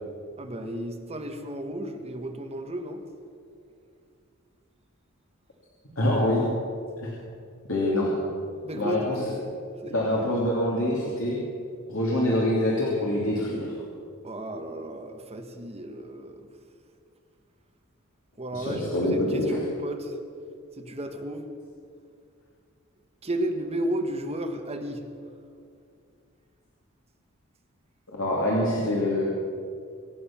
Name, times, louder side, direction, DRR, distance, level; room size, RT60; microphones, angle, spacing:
voice 1, 0.4-3.1 8.6-9.2 9.8-9.9 14.2-16.5 18.4-20.2 20.8-21.5 23.2-25.0, right 1 dB, 30° right, 4 dB, 1.6 m, -33 dB
voice 2, 6.0-6.4 7.0-7.1 7.7-8.1 8.7-9.2 9.9-11.4 11.9-13.7 18.5-19.6 28.1-29.2, left 1 dB, 70° left, -4 dB, 2.8 m, -25 dB
24.5 x 9.7 x 6.0 m, 2.3 s
head